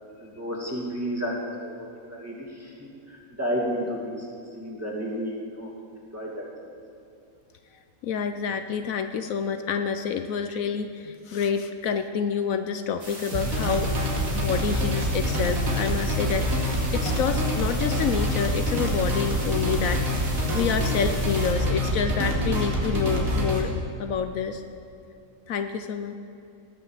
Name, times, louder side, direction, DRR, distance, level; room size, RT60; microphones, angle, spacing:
voice 1, 0.2-1.7 2.1-4.3 4.5-5.7 6.1-6.5, equal, 10° right, -3 dB, 2.5 m, -31 dB
voice 2, 8.0-13.9 14.3-20.2 20.5-23.7 24.0-24.6 25.5-26.1, left 6 dB, 75° left, 8 dB, 1.1 m, -28 dB
sound 1, 13.0-21.5, right 1 dB, 45° right, 3.7 m, -40 dB
sound 2, 13.3-23.6, equal, 75° right, 2.6 m, -26 dB
19.0 x 7.0 x 7.4 m, 2.6 s
omnidirectional pair, 1.5 m